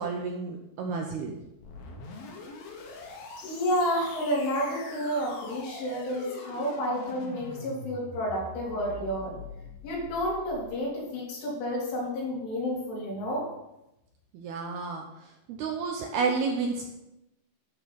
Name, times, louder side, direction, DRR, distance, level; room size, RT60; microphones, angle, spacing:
voice 1, 0.0-1.4 14.3-16.9, right 4 dB, 75° right, 2 dB, 2.3 m, -31 dB
sound 1, 1.6-10.8, left 3 dB, 60° left, 2.8 m, -43 dB
voice 2, 3.4-9.4 9.8-13.5, equal, 85° left, -5 dB, 6.1 m, -30 dB
12.0 x 6.1 x 5.2 m, 0.89 s
omnidirectional pair, 5.4 m